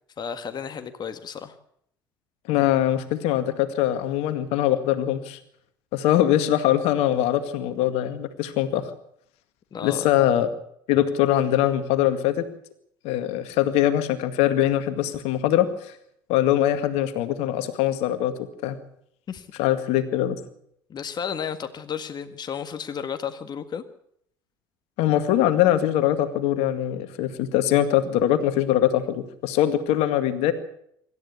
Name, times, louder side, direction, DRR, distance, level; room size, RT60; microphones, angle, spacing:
voice 1, 0.2-1.6 9.7-10.1 19.3-19.5 20.9-23.8, left 7 dB, 40° left, 8 dB, 1.7 m, -33 dB
voice 2, 2.5-5.4 5.9-8.8 9.8-10.5 10.9-12.4 13.0-15.7 16.3-18.3 18.6-18.8 19.6-20.4 25.0-30.5, left 12 dB, 65° left, 10 dB, 2.1 m, -22 dB
25.5 x 13.5 x 8.4 m, 0.70 s
hypercardioid pair, 60°, 11 cm